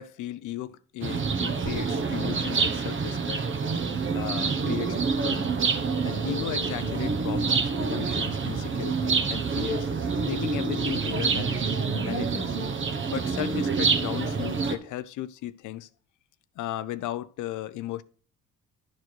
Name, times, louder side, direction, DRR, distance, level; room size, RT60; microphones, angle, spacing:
voice 1, 0.0-3.5 4.1-5.5 6.0-9.9 10.3-11.6 11.9-12.5 13.1-15.9 16.6-18.0, left 13 dB, 80° left, 0.5 m, -36 dB
sound 1, 1.0-14.8, right 5 dB, 40° right, 1.1 m, -27 dB
10.5 x 4.7 x 4.5 m
cardioid pair, 90°, 30 cm